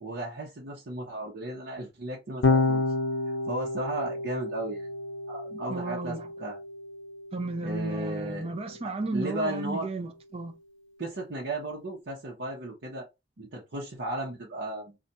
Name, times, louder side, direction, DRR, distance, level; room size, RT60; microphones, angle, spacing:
voice 1, 0.0-2.8 3.3-4.9 5.3-6.6 7.6-8.5 8.8-9.9 11.0-13.1 13.4-15.0, right 1 dB, 75° right, 0.8 m, -35 dB
Electric guitar / Bass guitar, 2.4-8.8, left 3 dB, 90° left, 0.5 m, -30 dB
voice 2, 5.7-6.3 7.3-10.5, right 2 dB, 30° right, 0.5 m, -33 dB
2.4 x 2.2 x 4.0 m
head